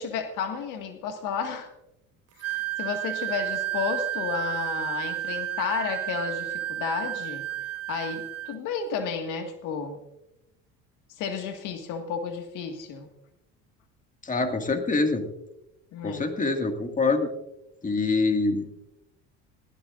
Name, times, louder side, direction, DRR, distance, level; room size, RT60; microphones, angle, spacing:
voice 1, 0.0-1.7 2.4-7.5 7.9-10.0 11.2-13.1 15.9-16.3, left 6 dB, 65° left, 6 dB, 1.8 m, -32 dB
Wind instrument woodwind instrument, 2.4-8.6, right 13 dB, 45° right, 0.7 m, -32 dB
voice 2, 14.2-15.3 16.0-17.3 17.8-18.7, left 3 dB, 25° left, 5 dB, 2.0 m, -25 dB
20.0 x 16.0 x 2.5 m, 0.89 s
supercardioid pair, 85°, 33 cm